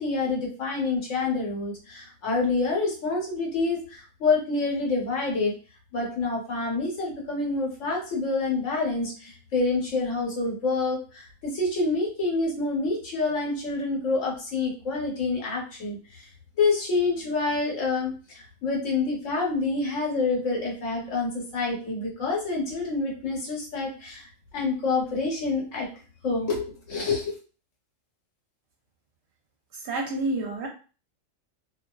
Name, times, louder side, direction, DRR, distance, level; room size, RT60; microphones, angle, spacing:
voice 1, 0.0-5.5 5.9-16.3 16.6-25.9 26.2-27.3, left 3 dB, 75° left, -2 dB, 1.2 m, -27 dB
voice 2, 29.9-30.7, right 2 dB, 65° right, 1 dB, 0.8 m, -28 dB
2.5 x 2.4 x 2.2 m, 0.36 s
omnidirectional pair, 1.3 m